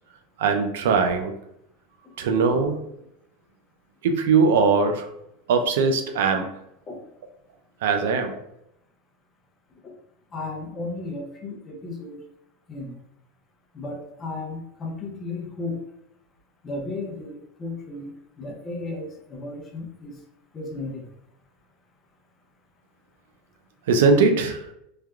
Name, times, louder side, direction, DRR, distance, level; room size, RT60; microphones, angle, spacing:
voice 1, 0.4-1.3 2.2-2.8 4.0-5.1 5.5-6.5 7.8-8.4 23.9-24.6, right 4 dB, 80° right, 6 dB, 0.4 m, -20 dB
voice 2, 10.3-12.2 12.7-12.9 13.7-15.8 16.6-18.1 18.4-20.2 20.5-21.1, left 2 dB, 25° left, 2 dB, 0.6 m, -34 dB
3.2 x 2.3 x 2.2 m, 0.78 s
supercardioid pair, 125°, 0 cm